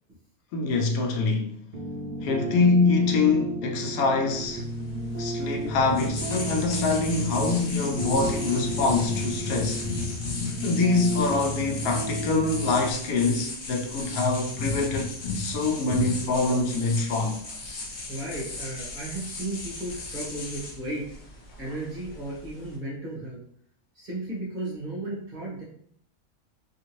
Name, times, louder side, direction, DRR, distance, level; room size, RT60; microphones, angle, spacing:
voice 1, 0.5-1.6 2.2-4.6 5.2-9.9 10.6-17.4, left 3 dB, 80° left, 1.0 m, -25 dB
sound 1, 1.7-12.9, right 1 dB, 65° right, 0.5 m, -34 dB
sound 2, 4.3-22.8, left 3 dB, 55° left, 0.5 m, -35 dB
voice 2, 17.7-21.1 21.6-23.4 23.9-25.6, right 2 dB, 40° right, 0.9 m, -35 dB
2.8 x 2.6 x 2.9 m
omnidirectional pair, 1.5 m